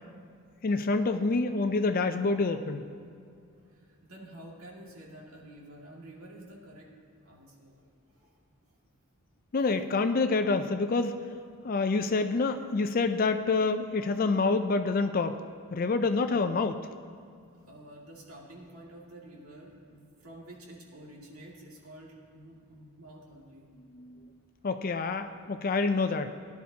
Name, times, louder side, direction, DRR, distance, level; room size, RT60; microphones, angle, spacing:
voice 1, 0.6-2.9 9.5-11.2 11.6-15.4 15.7-16.8 23.9-24.3 24.6-26.3, left 3 dB, 40° left, 8 dB, 0.4 m, -27 dB
voice 2, 3.7-6.9 7.2-7.9 8.2-8.3 17.7-23.7, right 1 dB, 80° right, -2 dB, 2.2 m, -49 dB
18.0 x 10.5 x 2.8 m, 2.4 s
head